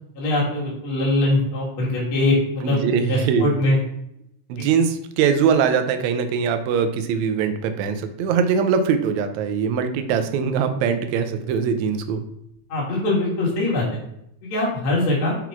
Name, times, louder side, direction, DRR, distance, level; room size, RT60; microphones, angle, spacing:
voice 1, 0.2-2.8 3.1-3.8 4.6-4.7 12.7-13.9 14.4-15.4, left 2 dB, 50° left, -5 dB, 2.2 m, -22 dB
voice 2, 2.6-3.5 4.5-12.2, right 6 dB, 80° right, 8 dB, 1.9 m, -22 dB
5.7 x 4.0 x 4.5 m, 0.77 s
omnidirectional pair, 3.4 m